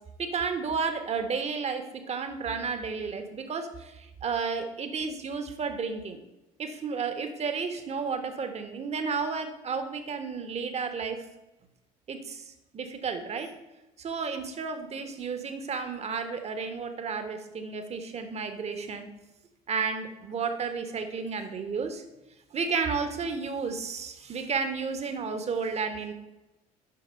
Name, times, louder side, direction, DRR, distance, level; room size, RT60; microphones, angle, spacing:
voice 1, 0.2-6.2 6.6-11.2 12.1-13.5 14.0-19.1 19.7-22.0 22.5-26.1, right 5 dB, 35° right, 7 dB, 1.2 m, -32 dB
8.6 x 5.8 x 5.5 m, 0.99 s
figure-of-eight pair, 55°, 20 cm